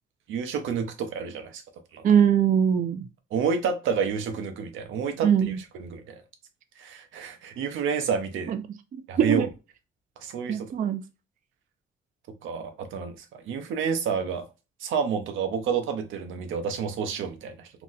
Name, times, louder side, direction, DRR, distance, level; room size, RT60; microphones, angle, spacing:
voice 1, 0.3-1.6 1.9-2.0 3.3-5.3 5.8-6.2 6.8-8.5 9.1-9.5 10.2-10.7 12.4-14.5 14.8-17.7, right 6 dB, 80° right, 0.7 m, -29 dB
voice 2, 2.0-3.1 5.2-5.6 8.5-8.6 8.9-9.5 10.5-11.0, right 8 dB, 40° right, 0.4 m, -22 dB
2.8 x 2.0 x 3.8 m
cardioid pair, 90°, 20 cm